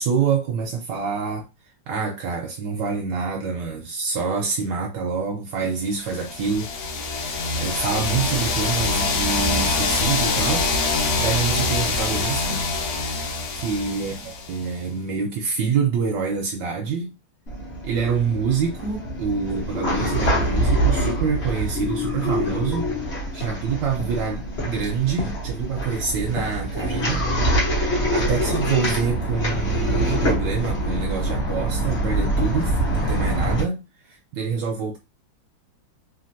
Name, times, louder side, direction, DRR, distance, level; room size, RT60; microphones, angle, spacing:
voice 1, 0.0-1.5 1.9-6.7 7.0-10.7 11.2-12.6 13.5-14.1 14.5-17.1 17.8-22.9 23.3-27.3 28.1-35.0, right 5 dB, 75° right, 1.2 m, -26 dB
sound 1, 6.0-14.8, left 3 dB, 65° left, 1.1 m, -24 dB
sound 2, 17.5-33.6, right 1 dB, 40° left, 1.0 m, -25 dB
3.3 x 2.5 x 2.6 m
omnidirectional pair, 2.1 m